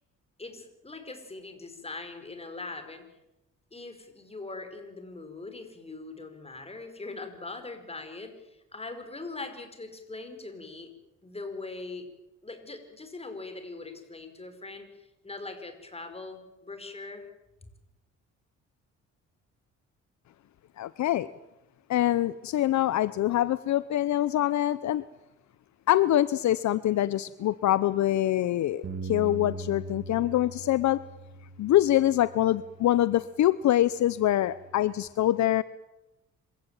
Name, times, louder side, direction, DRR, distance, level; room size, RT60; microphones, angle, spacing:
voice 1, 0.4-3.0 3.7-10.9 11.2-12.1 12.4-17.3, left 3 dB, 20° left, 7 dB, 5.2 m, -41 dB
voice 2, 20.8-21.3 21.9-25.0 25.9-31.0 31.6-35.6, left 13 dB, 65° left, 16 dB, 0.8 m, -24 dB
Bass guitar, 28.8-33.3 33.9-35.1, right 3 dB, 50° right, 2.6 m, -42 dB
26.5 x 16.0 x 9.1 m, 0.93 s
cardioid pair, 90°, 30 cm